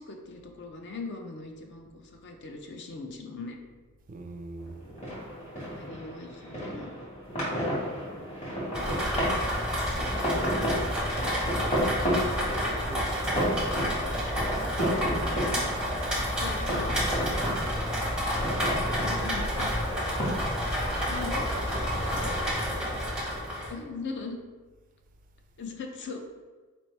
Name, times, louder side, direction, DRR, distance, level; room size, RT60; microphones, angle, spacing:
voice 1, 0.0-3.6 5.6-6.9 10.4-10.7 15.5-15.7 16.4-17.0 19.0-19.7 20.8-21.5 23.7-24.4 25.6-26.2, left 4 dB, 50° left, 3 dB, 0.5 m, -40 dB
voice 2, 4.1-4.8 7.5-7.8 11.5-12.0 12.5-13.7 17.4-17.7 18.7-19.9 21.2-23.0, right 2 dB, 35° right, 5 dB, 0.3 m, -43 dB
sound 1, 4.6-23.9, equal, 30° left, 1.4 m, -33 dB
Rain, 8.7-23.7, equal, 5° right, 0.7 m, -29 dB
sound 2, 17.4-22.4, equal, 90° left, 1.2 m, -46 dB
4.2 x 3.1 x 3.2 m, 1.3 s
head